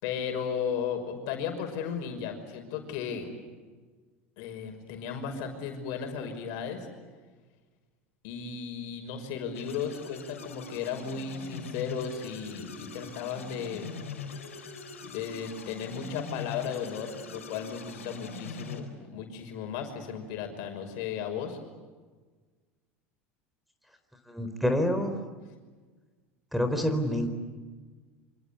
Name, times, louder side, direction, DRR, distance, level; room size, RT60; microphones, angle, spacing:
voice 1, 0.0-3.3 4.4-6.9 8.2-13.9 15.1-21.6, left 7 dB, 60° left, 4 dB, 5.7 m, -35 dB
sound 1, 9.5-18.8, left 5 dB, 85° left, 4.5 m, -42 dB
voice 2, 24.3-25.1 26.5-27.3, left 1 dB, ahead, 8 dB, 4.2 m, -27 dB
27.5 x 26.0 x 8.4 m, 1.4 s
hypercardioid pair, 80°, 7 cm